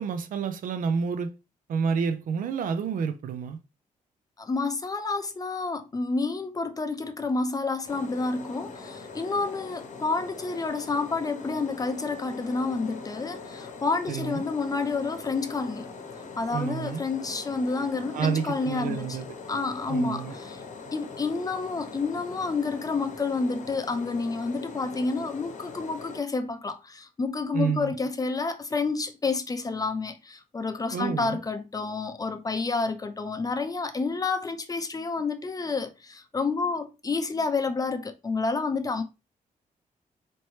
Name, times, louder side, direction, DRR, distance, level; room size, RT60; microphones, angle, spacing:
voice 1, 0.0-1.3 1.7-3.6 14.1-14.4 16.5-17.0 18.1-19.3 19.9-20.3 27.5-27.9 30.9-31.4, right 6 dB, 70° right, 0.5 m, -29 dB
voice 2, 4.4-15.9 16.4-19.2 19.5-20.6 20.9-39.0, left 4 dB, 25° left, 0.6 m, -29 dB
sound 1, 7.9-26.2, left 4 dB, 60° left, 0.9 m, -42 dB
4.4 x 3.0 x 3.1 m
wide cardioid pair, 130°, 14 cm